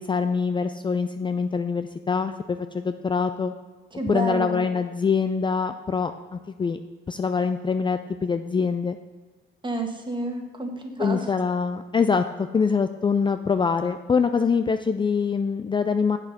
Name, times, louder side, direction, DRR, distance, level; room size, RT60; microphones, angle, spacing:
voice 1, 0.0-3.5 4.1-6.8 7.1-9.0 11.0-16.2, left 5 dB, 25° left, 8 dB, 0.4 m, -24 dB
voice 2, 3.9-4.6 9.6-11.2, right 2 dB, 25° right, 4 dB, 1.5 m, -30 dB
7.4 x 6.7 x 5.9 m, 1.4 s
cardioid pair, 90°, 20 cm